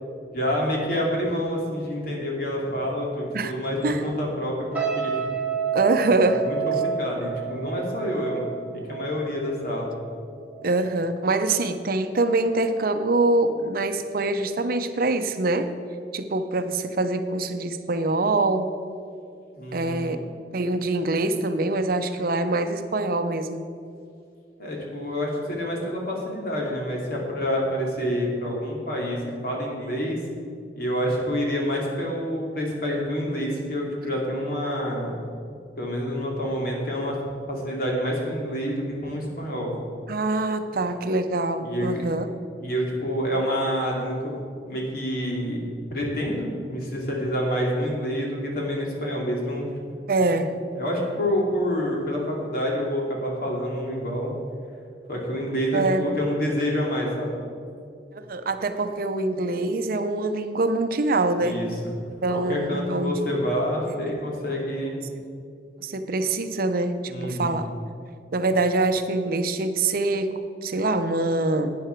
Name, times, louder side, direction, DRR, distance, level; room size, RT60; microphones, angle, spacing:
voice 1, 0.3-5.2 6.4-8.4 8.7-9.9 19.5-20.2 24.6-30.2 30.7-35.2 35.8-37.2 37.5-39.7 41.6-42.0 42.6-44.3 44.7-49.7 50.7-54.3 55.1-57.4 61.4-61.9 62.3-65.0 67.1-67.6, equal, 55° left, -2 dB, 2.5 m, -27 dB
sound 1, 4.7-10.0 10.4-10.7, right 7 dB, 10° right, 1.7 m, -30 dB
voice 2, 5.7-6.5 10.6-15.7 16.1-18.7 19.7-20.2 20.5-23.6 40.1-42.3 50.1-50.6 55.7-56.2 58.1-61.6 62.2-63.2 65.1-65.2 65.8-67.7 68.3-71.8, right 2 dB, 55° right, 9 dB, 0.6 m, -24 dB
11.5 x 9.3 x 4.5 m, 2.4 s
head